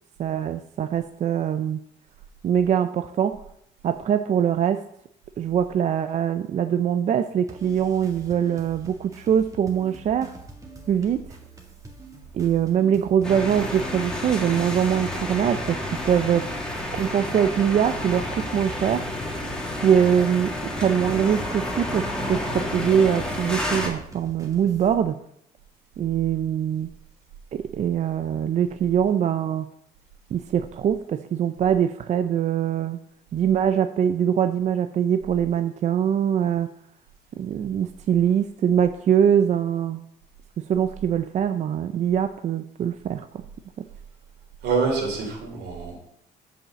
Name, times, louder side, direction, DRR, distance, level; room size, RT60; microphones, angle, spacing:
voice 1, 0.2-1.8 2.4-3.4 3.8-4.8 5.4-10.4 10.9-11.3 12.3-16.5 16.9-19.1 19.8-25.2 26.0-26.9 27.5-29.7 30.3-33.0 33.3-36.7 37.4-40.0 40.6-43.3 43.8-43.9, right 8 dB, 45° right, 10 dB, 0.5 m, -23 dB
sound 1, 7.5-24.9, right 3 dB, 20° right, 1.9 m, -44 dB
sound 2, 13.2-23.9, left 1 dB, 5° left, 2.2 m, -30 dB
voice 2, 44.6-45.9, right 4 dB, 80° right, 1 dB, 3.3 m, -26 dB
7.2 x 5.7 x 7.3 m, 0.73 s
cardioid pair, 110°, 17 cm